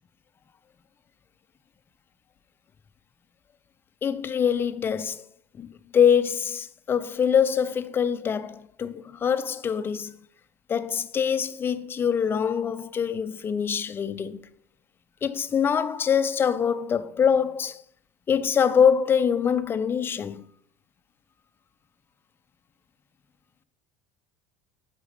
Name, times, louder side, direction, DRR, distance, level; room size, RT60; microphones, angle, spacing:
voice 1, 4.0-5.2 5.6-5.7 5.9-10.1 10.7-14.4 15.2-17.8 18.3-20.4, left 7 dB, 30° left, 0.4 m, -24 dB
7.9 x 4.0 x 3.4 m
hypercardioid pair, 75°, 8 cm